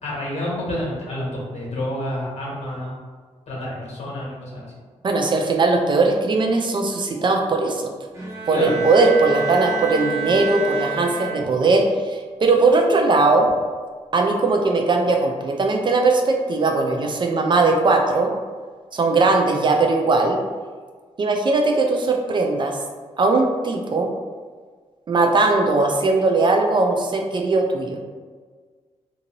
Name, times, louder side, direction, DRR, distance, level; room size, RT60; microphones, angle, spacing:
voice 1, 0.0-2.9 3.5-4.7 8.5-8.7, left 1 dB, 65° left, -5 dB, 1.1 m, -29 dB
voice 2, 5.0-7.9 8.5-13.5 14.1-18.3 18.9-20.4 21.2-22.8 23.2-24.1 25.1-28.0, right 3 dB, 40° right, 2 dB, 0.4 m, -19 dB
Bowed string instrument, 8.1-11.8, right 5 dB, 25° right, 0.7 m, -28 dB
2.6 x 2.6 x 2.9 m, 1.5 s
cardioid pair, 105°, 12 cm